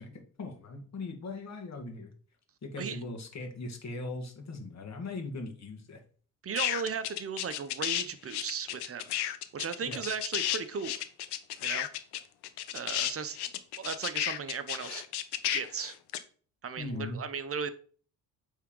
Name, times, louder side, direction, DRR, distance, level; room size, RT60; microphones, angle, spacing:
voice 1, 0.0-2.1 2.6-6.0 9.8-10.0 16.8-17.2, left 2 dB, 40° left, 4 dB, 1.7 m, -39 dB
voice 2, 6.4-9.1 9.5-11.0 11.6-11.9 12.7-13.4 13.8-15.0 15.5-15.9 16.6-17.7, right 6 dB, 35° right, 12 dB, 0.8 m, -36 dB
sound 1, 6.5-8.0 8.3-16.2, left 12 dB, 75° left, 0.7 m, -32 dB
8.2 x 3.7 x 3.8 m, 0.43 s
cardioid pair, 80°, 40 cm